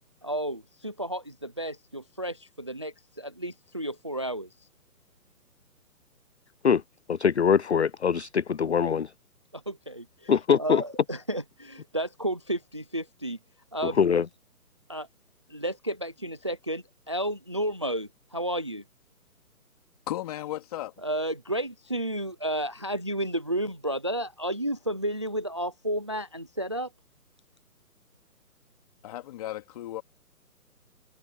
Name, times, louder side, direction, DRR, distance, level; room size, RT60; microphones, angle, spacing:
voice 1, 0.2-4.5 9.5-10.3 10.6-13.4 13.7-14.0 14.9-15.1 15.5-18.8 21.0-26.9, right 1 dB, 20° right, 0.6 m, -32 dB
voice 2, 7.1-9.1 10.3-10.8 13.8-14.3, left 7 dB, 50° left, 0.5 m, -23 dB
voice 3, 20.1-20.9 29.0-30.0, left 14 dB, 25° left, 3.4 m, -35 dB
hypercardioid pair, 165°, 46 cm